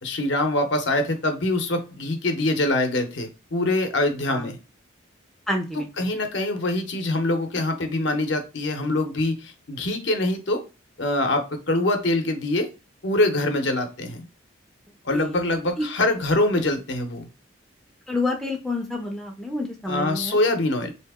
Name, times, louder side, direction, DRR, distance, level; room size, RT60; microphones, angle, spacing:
voice 1, 0.0-4.6 6.0-10.6 11.0-12.7 13.0-14.3 15.0-17.3 19.9-20.9, left 2 dB, 60° left, 5 dB, 0.7 m, -24 dB
voice 2, 5.5-6.1 15.1-15.4 15.8-15.9 18.1-20.4, left 2 dB, ahead, 0 dB, 0.5 m, -28 dB
3.5 x 2.8 x 3.5 m, 0.31 s
head